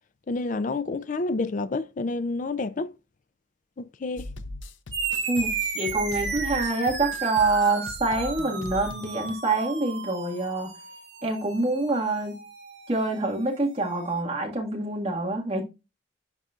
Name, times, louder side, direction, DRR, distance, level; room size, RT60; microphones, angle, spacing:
voice 1, 0.3-2.9 3.8-4.3, left 3 dB, 40° left, 0.4 m, -29 dB
sound 1, 4.2-9.3, left 2 dB, 90° left, 0.7 m, -40 dB
sound 2, 4.9-13.8, right 5 dB, 70° right, 2.1 m, -34 dB
voice 2, 5.3-10.7 11.2-12.4 12.9-15.6, right 2 dB, 30° right, 1.8 m, -26 dB
10.5 x 4.2 x 2.4 m
head